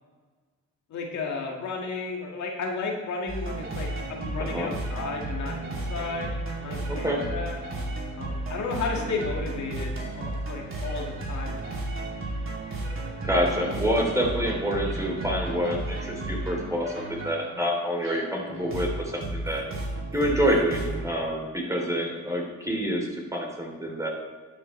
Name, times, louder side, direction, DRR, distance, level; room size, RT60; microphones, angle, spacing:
voice 1, 0.9-6.3 6.6-7.6 8.2-11.8, left 4 dB, 70° left, 0 dB, 2.0 m, -33 dB
sound 1, 3.3-21.1, right 2 dB, 45° right, 2.8 m, -33 dB
voice 2, 4.4-4.7 6.9-7.2 13.2-19.7 20.1-23.1 23.3-24.1, equal, 10° right, -1 dB, 3.1 m, -27 dB
12.0 x 8.6 x 3.2 m, 1.4 s
cardioid pair, 90°, 30 cm